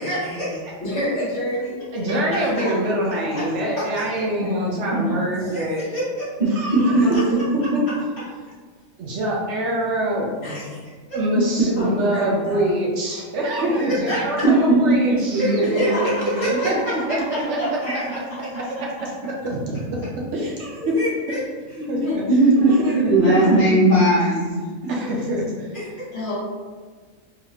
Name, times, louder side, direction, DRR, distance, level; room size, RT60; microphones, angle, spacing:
voice 1, 0.0-0.7 2.3-2.5 3.4-3.5 3.9-4.0 5.5-6.2 10.4-10.8 11.1-11.2 13.8-14.2 15.8-17.0 17.6-18.0 20.9-21.4 22.7-22.9 23.2-23.6, equal, 35° left, -14 dB, 1.2 m, -28 dB
voice 2, 0.8-2.0 2.6-2.7 3.3-3.5 4.3-4.7 5.0-5.2 5.4-5.6 6.9-7.4 11.8-12.7 13.7-14.5 15.7-16.2 16.5-16.8 20.9-21.0 22.0-22.2 26.1-26.4, equal, 55° left, -9 dB, 1.4 m, -29 dB
voice 3, 1.9-5.8 6.6-7.1 7.7-7.8 9.0-10.3 11.1-15.6 16.6-16.7 17.5-17.8 19.0-19.1 19.4-20.9 21.3-21.4 21.9-22.2 23.0-23.4 24.9-25.7, right 1 dB, 65° right, -2 dB, 0.9 m, -25 dB
voice 4, 4.4-5.0 6.7-6.8 11.3-11.4 14.4-14.5 14.9-15.0 15.3-16.6 21.7-22.8 23.1-24.9, right 2 dB, 40° right, -13 dB, 1.3 m, -19 dB
3.9 x 2.7 x 2.8 m, 1.5 s
omnidirectional pair, 1.4 m